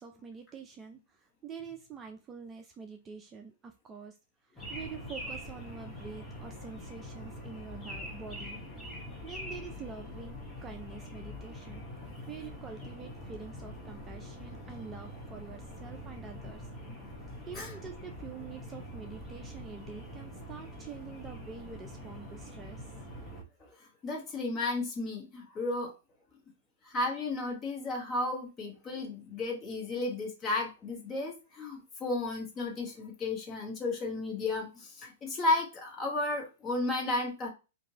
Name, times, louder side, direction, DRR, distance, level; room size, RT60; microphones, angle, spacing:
voice 1, 0.0-4.2 4.4-8.6 9.2-11.9 12.3-16.7 17.5-22.9, right 5 dB, 20° right, 5 dB, 0.4 m, -46 dB
sound 1, 4.6-23.4, left 1 dB, 5° left, 1.0 m, -44 dB
voice 2, 23.6-25.9 26.8-37.5, left 2 dB, 25° left, 0 dB, 1.2 m, -33 dB
2.9 x 2.5 x 2.8 m, 0.29 s
hypercardioid pair, 125°, 0 cm